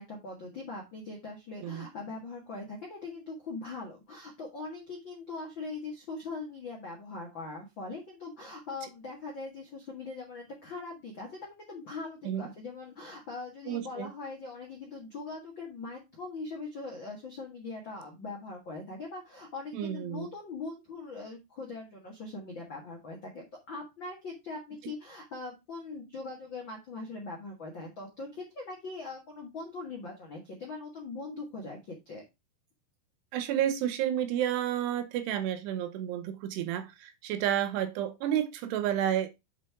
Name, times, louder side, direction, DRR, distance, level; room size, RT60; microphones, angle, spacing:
voice 1, 0.0-32.2, left 3 dB, 65° left, 1.1 m, -41 dB
voice 2, 13.7-14.1 19.7-20.3 33.3-39.3, right 10 dB, 80° right, 2.7 m, -31 dB
7.6 x 5.2 x 3.5 m
omnidirectional pair, 5.0 m